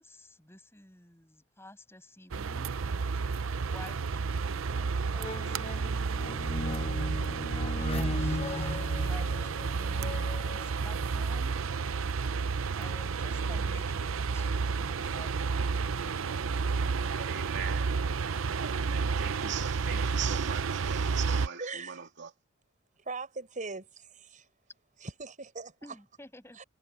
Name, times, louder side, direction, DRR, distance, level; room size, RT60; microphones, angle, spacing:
voice 1, 0.0-2.7 3.7-6.5 7.7-11.6 12.3-12.4 12.8-16.7 25.8-26.6, left 1 dB, 15° left, 6.2 m, -51 dB
sound 1, 2.3-21.5, right 5 dB, 90° right, 0.6 m, -31 dB
sound 2, 4.7-4.8 5.1-11.1 11.7-11.8, left 2 dB, 30° left, 0.9 m, -38 dB
voice 2, 17.1-18.0 18.6-22.3, right 7 dB, 60° right, 2.4 m, -40 dB
voice 3, 21.6-22.1 23.0-24.5 25.0-25.7 26.5-26.6, right 3 dB, 40° right, 5.2 m, -40 dB
head